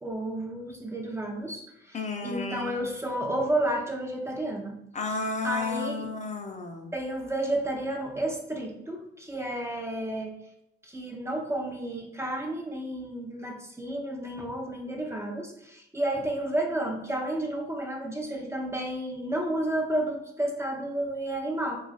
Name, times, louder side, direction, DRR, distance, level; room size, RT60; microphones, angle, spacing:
voice 1, 0.0-4.8 5.4-6.1 6.9-10.3 10.8-21.8, right 1 dB, 15° right, 1 dB, 0.6 m, -31 dB
voice 2, 1.9-2.8 4.9-6.9, left 4 dB, 35° left, 3 dB, 0.6 m, -32 dB
3.0 x 2.4 x 4.0 m, 0.78 s
cardioid pair, 90°, 20 cm